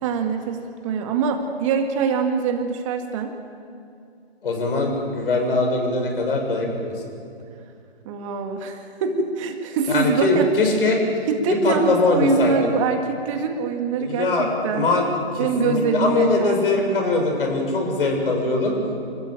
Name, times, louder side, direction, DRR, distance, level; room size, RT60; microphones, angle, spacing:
voice 1, 0.0-3.3 8.1-10.5 11.3-14.9 15.4-17.3, right 5 dB, 30° right, 4 dB, 2.0 m, -24 dB
voice 2, 4.4-6.9 9.9-11.0 11.5-12.6 14.0-18.8, left 3 dB, 60° left, 2 dB, 7.1 m, -22 dB
28.0 x 14.5 x 9.0 m, 2.5 s
hypercardioid pair, 145°, 32 cm